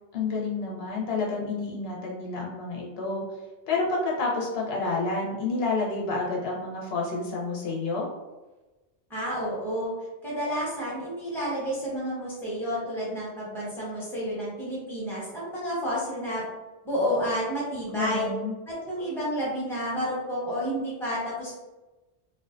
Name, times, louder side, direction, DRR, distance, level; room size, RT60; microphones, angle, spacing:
voice 1, 0.1-3.2 3.7-8.1 17.9-18.6, left 3 dB, 75° left, -3 dB, 0.8 m, -29 dB
voice 2, 9.1-9.9 10.2-16.5 16.8-18.3 18.7-21.5, equal, ahead, -7 dB, 0.7 m, -30 dB
2.4 x 2.2 x 2.4 m, 1.1 s
omnidirectional pair, 1.1 m